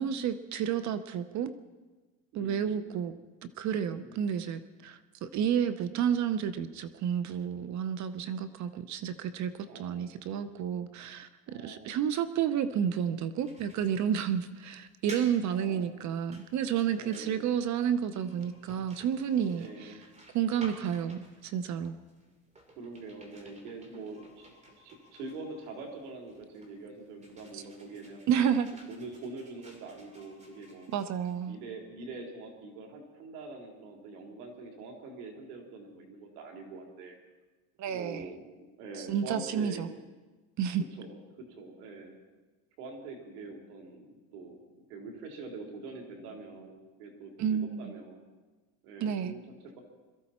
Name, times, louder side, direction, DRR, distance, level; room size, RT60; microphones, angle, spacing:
voice 1, 0.0-1.5 2.3-3.1 3.4-9.5 9.8-20.0 20.3-21.9 27.5-27.6 28.3-28.7 30.9-31.6 37.8-38.2 39.0-39.9 40.6-40.8 47.4-47.9 49.0-49.3, right 8 dB, 40° right, 13 dB, 0.7 m, -31 dB
voice 2, 2.3-3.1 3.9-4.4 9.7-10.2 11.5-12.0 15.5-16.0 16.9-17.4 19.6-20.0 22.8-24.5 24.8-28.2 28.9-30.9 31.4-37.2 37.9-38.4 38.8-40.0 40.9-42.1 42.8-48.2 48.8-49.8, right 3 dB, 90° right, 1 dB, 3.7 m, -44 dB
sound 1, 13.4-31.8, right 1 dB, 15° right, 2.7 m, -54 dB
22.0 x 14.0 x 4.3 m, 1.2 s
cardioid pair, 140°, 44 cm